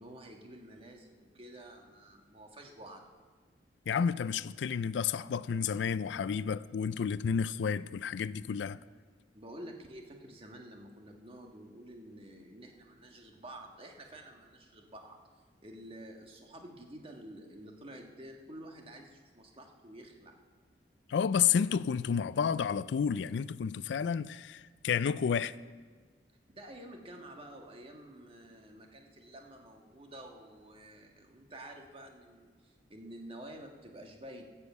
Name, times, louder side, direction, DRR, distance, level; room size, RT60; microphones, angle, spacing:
voice 1, 0.0-3.0 9.3-15.2 15.6-20.3 26.5-34.4, right 1 dB, 35° right, 1.5 m, -49 dB
voice 2, 3.9-8.8 21.1-25.5, left 7 dB, 80° left, 0.4 m, -31 dB
13.0 x 7.3 x 8.1 m
head